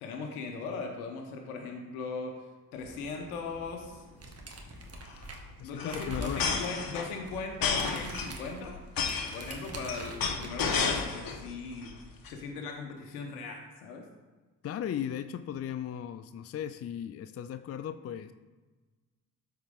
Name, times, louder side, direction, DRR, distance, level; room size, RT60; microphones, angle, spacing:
voice 1, 0.0-2.5 2.7-4.0 5.6-8.8 9.3-12.0 12.2-14.1, left 4 dB, 85° left, 3 dB, 1.0 m, -39 dB
sound 1, 2.8-3.0 3.3-3.4 3.6-3.9 4.8-11.4 11.8-12.3, left 5 dB, 50° left, 1.3 m, -32 dB
sound 2, 4.2-5.6 5.9-6.7 7.1-7.3 7.5-10.9, right 2 dB, 35° right, 1.7 m, -43 dB
voice 2, 5.6-6.4 14.6-18.3, left 10 dB, 35° left, 11 dB, 0.4 m, -36 dB
12.5 x 4.6 x 3.6 m, 1.3 s
hypercardioid pair, 45°, 43 cm